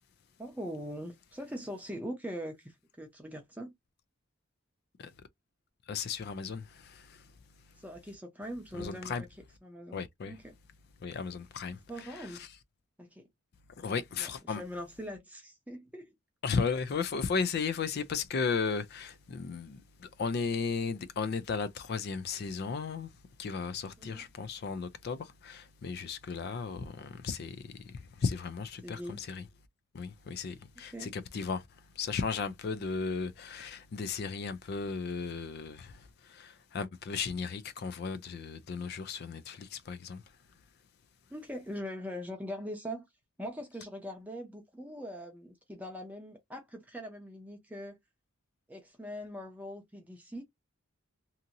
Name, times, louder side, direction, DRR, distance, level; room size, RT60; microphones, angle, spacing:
voice 1, 0.4-3.7 7.8-9.3 9.6-10.4 11.9-12.4 13.0-13.2 14.2-16.1 24.0-24.3 28.8-29.2 30.9-31.1 41.3-43.0 43.4-48.0 48.7-50.4, equal, 5° right, 0.6 m, -42 dB
voice 2, 5.9-7.3 8.7-9.2 9.9-10.4 11.0-12.5 13.8-14.6 16.4-23.1 23.4-29.5 29.9-40.2, left 5 dB, 50° left, 0.3 m, -35 dB
2.8 x 2.6 x 2.5 m
head